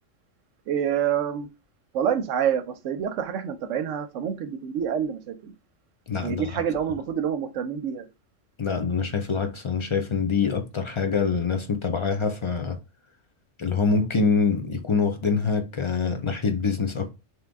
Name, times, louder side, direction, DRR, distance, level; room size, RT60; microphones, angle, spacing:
voice 1, 0.7-1.5 1.9-5.5 6.2-8.1, right 8 dB, 80° right, 1.0 m, -27 dB
voice 2, 6.1-6.5 8.6-12.8 13.6-17.1, left 5 dB, 45° left, 0.4 m, -25 dB
3.7 x 3.1 x 3.5 m
omnidirectional pair, 1.3 m